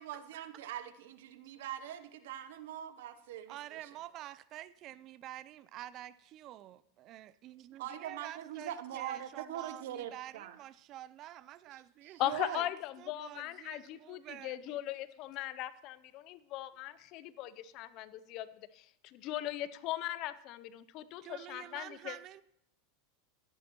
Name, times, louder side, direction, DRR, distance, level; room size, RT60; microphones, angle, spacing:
voice 1, 0.0-3.8 7.8-10.6 12.0-12.6, right 11 dB, 75° right, 12 dB, 0.7 m, -42 dB
voice 2, 3.5-12.7 13.0-14.8 21.2-22.4, right 13 dB, 45° right, 17 dB, 0.4 m, -48 dB
voice 3, 12.2-22.2, left 14 dB, 50° left, 16 dB, 0.5 m, -39 dB
13.5 x 11.0 x 3.0 m, 0.73 s
hypercardioid pair, 100°, 0 cm